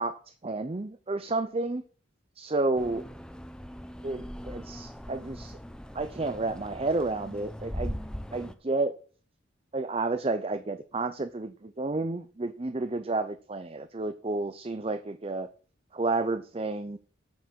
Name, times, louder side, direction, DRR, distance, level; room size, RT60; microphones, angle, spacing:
voice 1, 0.0-1.8 2.4-3.0 4.0-5.6 5.9-8.0 8.3-9.0 9.7-15.5 15.9-17.0, right 2 dB, 30° right, 0.6 m, -31 dB
sound 1, 2.7-8.5, equal, 5° left, 0.7 m, -40 dB
9.4 x 7.2 x 6.2 m
head